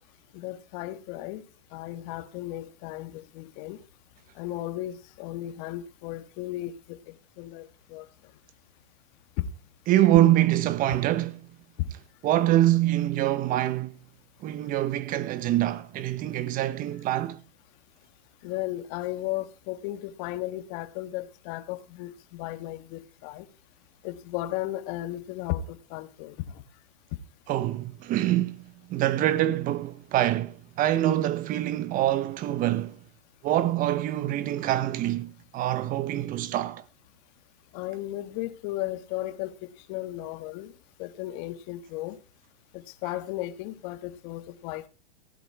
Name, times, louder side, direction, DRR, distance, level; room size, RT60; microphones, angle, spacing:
voice 1, 0.3-1.4 1.7-3.8 4.4-7.0 7.4-8.0 9.4-9.5 11.8-11.9 18.4-23.4 24.0-26.3 37.7-39.5 39.9-40.7 41.0-42.2 42.7-44.9, left 15 dB, 40° left, 1.4 m, -35 dB
voice 2, 9.9-11.4 12.2-14.0 14.4-17.4 27.5-28.6 28.9-33.0 33.4-36.8, right 13 dB, 25° right, 0.7 m, -25 dB
15.5 x 10.5 x 4.5 m
hypercardioid pair, 140°, 32 cm